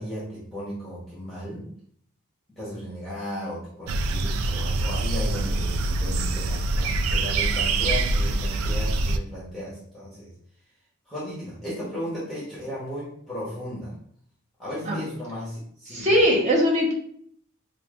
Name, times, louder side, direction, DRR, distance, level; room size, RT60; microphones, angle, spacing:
voice 1, 0.0-1.7 2.6-10.3 11.1-13.9 14.6-16.1, equal, ahead, -8 dB, 1.1 m, -35 dB
sound 1, 3.9-9.2, right 2 dB, 75° right, 0.3 m, -25 dB
voice 2, 15.9-16.9, equal, 35° right, -2 dB, 1.1 m, -20 dB
5.5 x 2.5 x 2.4 m, 0.62 s
head